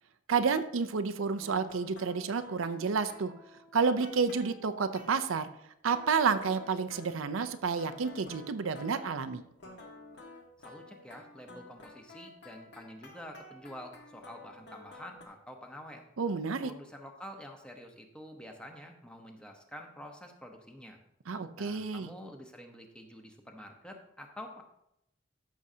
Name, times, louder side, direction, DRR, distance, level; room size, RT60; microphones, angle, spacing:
voice 1, 0.3-3.3 3.7-5.5 5.8-9.4 16.2-16.7 21.3-22.1, right 5 dB, 85° right, 11 dB, 0.6 m, -30 dB
sound 1, 1.4-5.3 5.8-9.3 9.6-15.3, left 2 dB, 55° left, 1.5 m, -51 dB
voice 2, 10.6-16.0 16.6-21.0 21.6-24.6, equal, 5° left, 3 dB, 0.9 m, -48 dB
14.0 x 6.3 x 2.8 m, 0.81 s
head